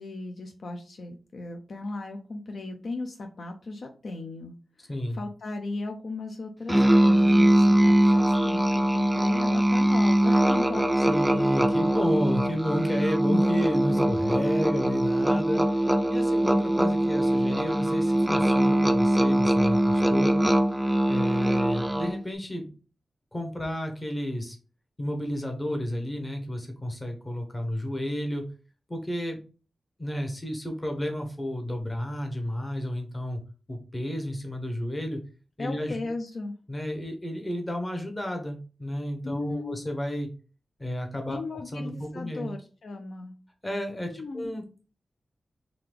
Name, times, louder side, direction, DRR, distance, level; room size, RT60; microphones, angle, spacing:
voice 1, 0.0-4.5 4.8-11.2 35.6-36.5 39.2-39.9 41.3-43.3 44.1-44.5, left 3 dB, 55° left, 5 dB, 0.5 m, -36 dB
voice 2, 4.9-5.2 11.1-20.3 21.1-22.7 23.3-24.6 25.0-28.4 28.9-29.4 30.0-33.4 33.7-35.2 35.6-36.0 36.7-40.3 40.8-41.4 41.7-42.5 43.6-44.6, equal, 20° left, 3 dB, 0.9 m, -32 dB
Musical instrument, 6.7-22.2, right 1 dB, 5° right, 0.4 m, -22 dB
3.8 x 3.3 x 3.3 m, 0.36 s
wide cardioid pair, 160°, 0 cm